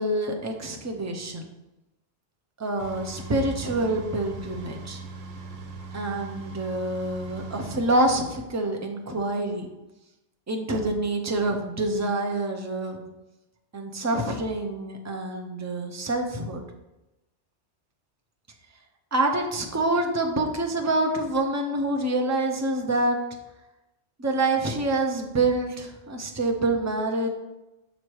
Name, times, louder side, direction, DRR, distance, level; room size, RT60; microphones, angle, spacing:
voice 1, 0.0-1.4 2.6-5.0 5.9-9.7 10.5-13.1 13.7-16.6 19.1-23.2 24.2-27.3, right 2 dB, 20° right, 2 dB, 0.4 m, -26 dB
sound 1, 2.8-7.8, right 3 dB, 90° right, 1.0 m, -40 dB
6.4 x 3.1 x 4.6 m, 0.98 s
omnidirectional pair, 1.2 m